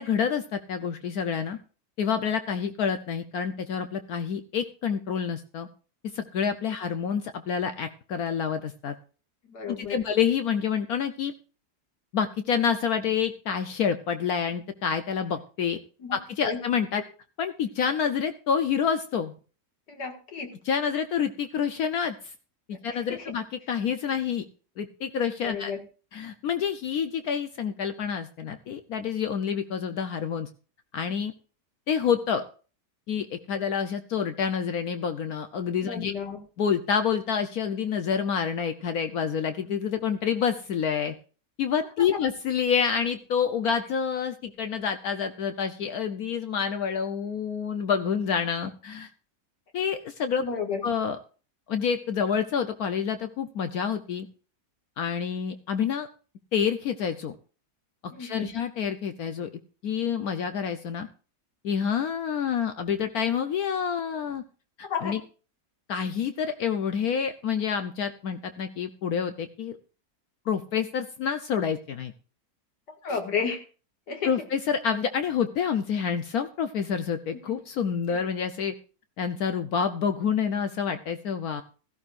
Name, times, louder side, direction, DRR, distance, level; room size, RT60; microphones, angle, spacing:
voice 1, 0.0-1.6 2.0-5.7 6.1-8.9 9.7-11.3 12.1-15.8 16.1-17.0 17.4-19.3 20.6-22.3 22.7-24.4 24.8-25.7 26.1-30.5 30.9-31.3 31.9-32.4 33.1-36.1 36.6-41.1 41.6-49.1 49.7-50.4 50.8-51.2 51.7-54.3 55.0-56.1 56.5-57.3 58.0-59.5 59.8-61.1 61.6-64.4 64.8-65.2 65.9-69.8 70.5-72.1 73.1-73.2 74.2-78.7 79.2-81.6, left 7 dB, 65° left, 8 dB, 1.2 m, -28 dB
voice 2, 9.5-10.0 16.0-16.2 16.4-16.6 19.9-20.5 22.9-23.3 25.4-25.8 35.8-36.4 50.4-50.8 58.1-58.5 64.9-65.2 73.0-73.6 74.1-74.3 77.3-77.6 78.1-78.2, left 6 dB, 85° left, 4 dB, 2.4 m, -32 dB
16.5 x 14.0 x 2.5 m, 0.37 s
omnidirectional pair, 1.7 m